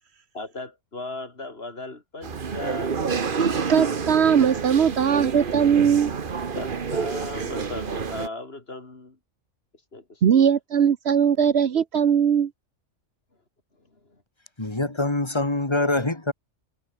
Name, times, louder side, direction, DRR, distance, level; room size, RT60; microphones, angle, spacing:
voice 1, 0.3-3.0 6.5-9.2 9.9-10.2 14.0-14.2, left 2 dB, 50° left, 3.5 m, -37 dB
Crowd Talking During Interval (surround version), 2.2-8.3, right 5 dB, 45° right, 1.3 m, -28 dB
voice 2, 3.7-6.1 10.2-12.5, right 8 dB, 60° right, 1.1 m, -20 dB
voice 3, 14.6-16.3, left 2 dB, 20° left, 2.5 m, -24 dB
omnidirectional pair, 1.3 m